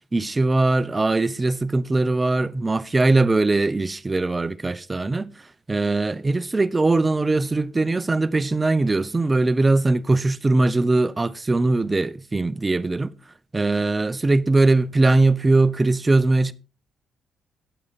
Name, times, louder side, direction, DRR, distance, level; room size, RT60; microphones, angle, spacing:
voice 1, 0.1-13.1 13.5-16.5, right 2 dB, 20° right, 0.7 m, -21 dB
9.8 x 8.6 x 4.1 m
cardioid pair, 90°, 0 cm